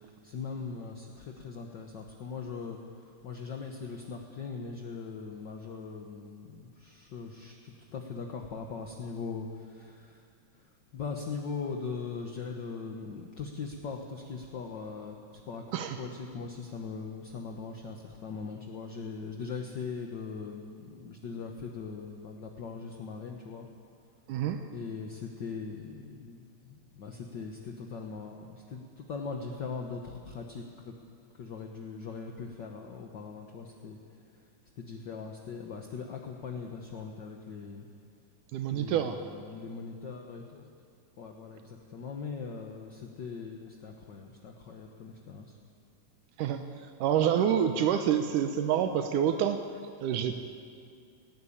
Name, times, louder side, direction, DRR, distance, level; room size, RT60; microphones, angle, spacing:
voice 1, 0.0-2.8 3.2-10.3 10.5-15.6 16.0-23.7 24.7-30.9 31.3-34.0 34.3-34.4 34.8-37.9 38.7-40.7 41.2-45.5, left 5 dB, 55° left, 2 dB, 1.3 m, -40 dB
voice 2, 24.3-24.6 38.5-39.2 46.4-49.6 50.0-50.4, right 9 dB, 85° right, 7 dB, 2.4 m, -27 dB
19.5 x 17.0 x 8.7 m, 2.3 s
omnidirectional pair, 3.6 m